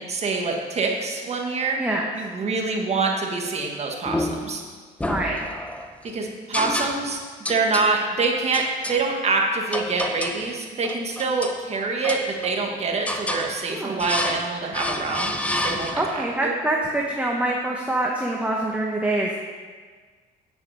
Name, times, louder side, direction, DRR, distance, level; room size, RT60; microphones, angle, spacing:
voice 1, 0.0-1.8 2.1-4.6 6.1-7.2 7.5-15.4 15.6-16.5, right 3 dB, 40° right, 1 dB, 1.5 m, -25 dB
sound 1, 4.1-4.6 5.0-5.9 6.5-7.2 7.4-7.9 8.5-9.0 9.7-10.4 10.8-11.6 12.0-12.7 13.1-13.5 14.0-14.5 14.7-16.2, left 1 dB, 10° left, 0.8 m, -29 dB
voice 2, 5.0-5.5 13.7-13.9 16.0-19.3, right 1 dB, 10° right, -2 dB, 1.1 m, -25 dB
9.7 x 6.8 x 5.5 m, 1.5 s
cardioid pair, 110°, 17 cm